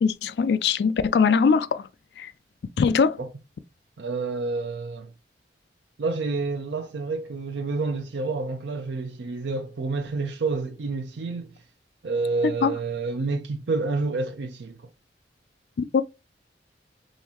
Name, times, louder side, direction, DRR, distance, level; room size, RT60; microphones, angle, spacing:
voice 1, 0.0-1.8 2.2-2.3 2.8-3.2 12.6-12.7 15.8-16.0, left 5 dB, 70° left, 0.3 m, -21 dB
voice 2, 4.0-5.1 6.0-11.6 12.0-14.9, right 3 dB, 85° right, 0.5 m, -29 dB
3.8 x 3.0 x 2.9 m
head